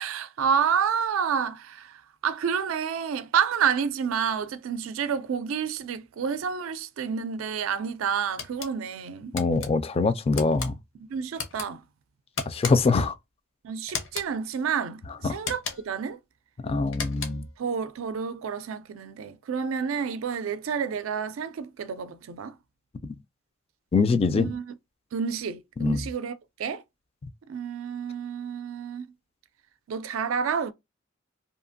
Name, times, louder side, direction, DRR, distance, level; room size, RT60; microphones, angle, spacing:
voice 1, 0.0-9.3 11.0-11.8 13.6-16.2 17.6-22.5 24.3-24.6 25.1-26.3 26.6-26.8 27.5-29.1 29.9-30.7, right 7 dB, 80° right, 0.4 m, -29 dB
sound 1, 8.4-8.7 9.4-9.7 10.3-10.7 11.3-11.7 12.4-13.0 13.9-14.3 15.4-16.0 16.9-17.5, left 5 dB, 70° left, 0.7 m, -35 dB
voice 2, 9.3-10.7 12.5-13.1 15.2-15.4 16.6-17.5 23.0-23.2 23.9-24.5 25.8-26.0, left 4 dB, 30° left, 0.3 m, -24 dB
2.8 x 2.4 x 2.5 m
head